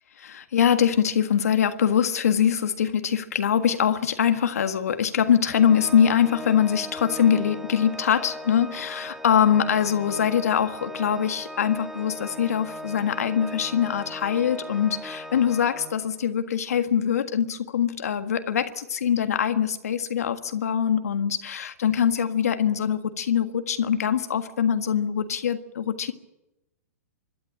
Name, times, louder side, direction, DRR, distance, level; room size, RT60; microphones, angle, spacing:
voice 1, 0.2-26.1, left 8 dB, 75° left, 8 dB, 1.6 m, -23 dB
Organ, 5.5-16.3, left 1 dB, 5° right, 1.9 m, -38 dB
25.5 x 12.0 x 10.0 m, 0.95 s
hypercardioid pair, 120°, 8 cm